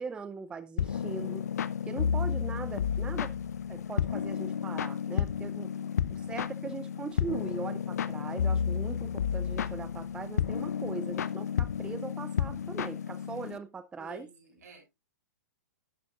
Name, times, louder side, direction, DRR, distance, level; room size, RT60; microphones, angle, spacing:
voice 1, 0.0-1.5 1.9-3.4 3.7-5.7 6.1-14.3, right 5 dB, 10° right, 0.5 m, -40 dB
sound 1, 0.8-13.6, left 8 dB, 65° left, 0.6 m, -32 dB
voice 2, 5.7-6.4 14.0-14.8, right 1 dB, 70° right, 5.8 m, -53 dB
11.0 x 9.7 x 2.4 m
figure-of-eight pair, 110°, 9 cm